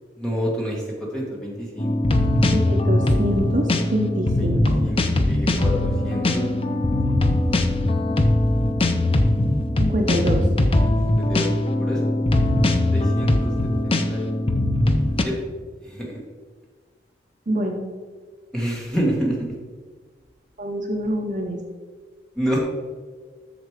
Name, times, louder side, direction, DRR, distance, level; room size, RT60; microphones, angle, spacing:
voice 1, 0.2-2.2 4.3-4.5 4.8-6.5 11.0-11.5 11.8-12.1 12.9-13.5 13.8-14.3 15.2-15.3 15.8-16.2 18.5-19.5 22.4-22.6, equal, 5° left, -3 dB, 1.7 m, -28 dB
sound 1, 1.8-15.2, left 1 dB, 30° left, 0.5 m, -21 dB
voice 2, 2.5-4.9 9.8-10.5 17.5-17.9 20.6-21.6, equal, 45° right, 2 dB, 0.8 m, -25 dB
8.0 x 6.5 x 5.0 m, 1.5 s
head